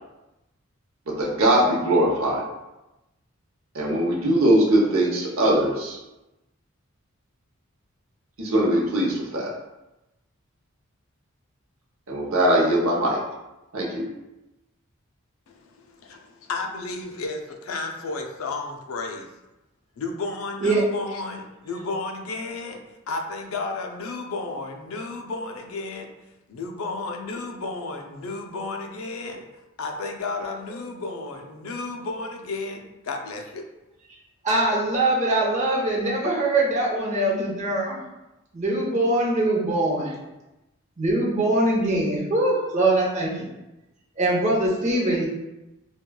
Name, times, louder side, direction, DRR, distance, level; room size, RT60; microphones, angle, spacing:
voice 1, 1.1-2.4 3.7-6.0 8.4-9.5 12.1-13.2 13.7-14.1, right 1 dB, 75° right, -3 dB, 0.8 m, -21 dB
voice 2, 15.5-19.3 20.0-26.1 26.5-29.4 29.8-33.7, left 3 dB, 80° left, 3 dB, 0.4 m, -33 dB
voice 3, 34.4-38.0 38.5-40.1 41.0-43.3 44.2-45.3, right 2 dB, 35° right, -4 dB, 0.7 m, -22 dB
4.3 x 2.2 x 2.2 m, 0.97 s
head